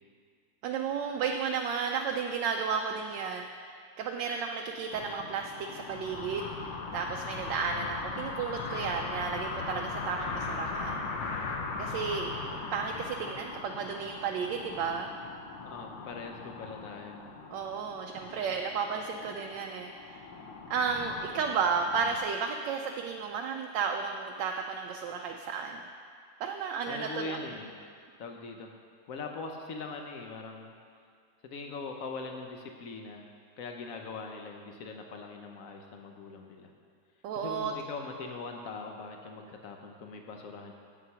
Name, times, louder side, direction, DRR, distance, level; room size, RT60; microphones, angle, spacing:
voice 1, 0.6-11.0 11.8-15.1 17.5-20.3 20.7-25.8 26.4-27.4 37.2-37.7, right 6 dB, 75° right, 3 dB, 1.1 m, -33 dB
sound 1, 4.9-22.2, left 4 dB, 90° left, 1.8 m, -39 dB
voice 2, 15.6-17.2 26.9-27.8 28.2-28.7 29.1-30.7 31.4-33.3 33.6-36.7 37.3-40.7, left 4 dB, 70° left, 3 dB, 0.7 m, -41 dB
8.1 x 7.5 x 5.6 m, 2.2 s
omnidirectional pair, 2.3 m